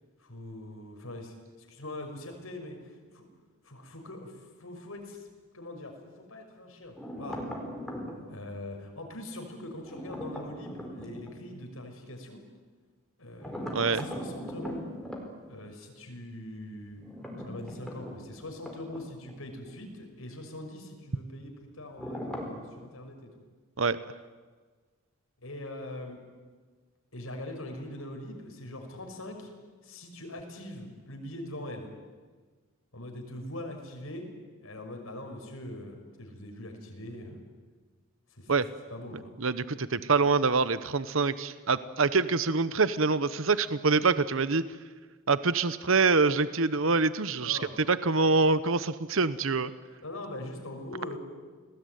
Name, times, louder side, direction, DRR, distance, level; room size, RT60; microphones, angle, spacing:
voice 1, 0.2-3.3 3.6-5.3 5.5-7.5 8.3-12.4 13.2-14.8 15.5-17.0 17.5-23.4 25.4-26.2 27.1-29.5 29.8-31.9 32.9-34.3 34.6-37.4 38.3-38.5 38.9-39.3 40.1-40.2 47.4-47.7 50.0-51.2, left 1 dB, 80° left, 3 dB, 5.9 m, -42 dB
sound 1, 6.9-8.3 9.8-11.3 13.4-15.2 17.0-19.4 19.7-19.8 22.0-22.7, equal, ahead, 4.9 m, -39 dB
voice 2, 13.7-14.0 23.8-24.0 38.5-38.7 39.4-44.6 45.3-47.6 47.9-49.7, right 4 dB, 70° right, 14 dB, 1.0 m, -25 dB
29.5 x 20.0 x 9.4 m, 1.4 s
head